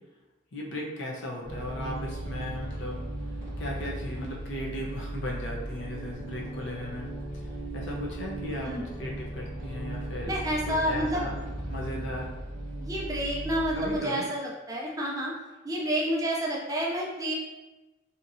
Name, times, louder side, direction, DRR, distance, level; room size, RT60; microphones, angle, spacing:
voice 1, 0.5-3.0 3.6-7.1 7.7-8.7 9.0-10.3 10.7-11.3 11.7-12.3 13.7-14.2, left 1 dB, 70° left, -2 dB, 0.7 m, -36 dB
sound 1, 1.4-14.0, right 1 dB, 45° left, 1.3 m, -37 dB
voice 2, 10.3-11.2 12.8-15.3 15.6-17.3, equal, 15° right, -2 dB, 0.4 m, -29 dB
2.8 x 2.7 x 2.6 m, 1.1 s
head